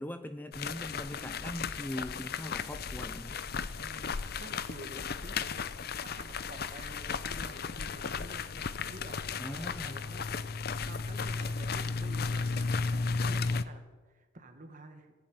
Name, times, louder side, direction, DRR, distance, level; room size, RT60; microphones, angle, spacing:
voice 1, 0.0-3.4 9.4-10.0, left 1 dB, 10° left, 9 dB, 0.5 m, -41 dB
sound 1, 0.5-13.6, left 4 dB, 50° left, 0.6 m, -35 dB
voice 2, 3.8-5.7 6.0-10.3 10.6-15.1, right 1 dB, 40° right, 6 dB, 1.7 m, -50 dB
18.5 x 7.6 x 9.4 m, 1.4 s
head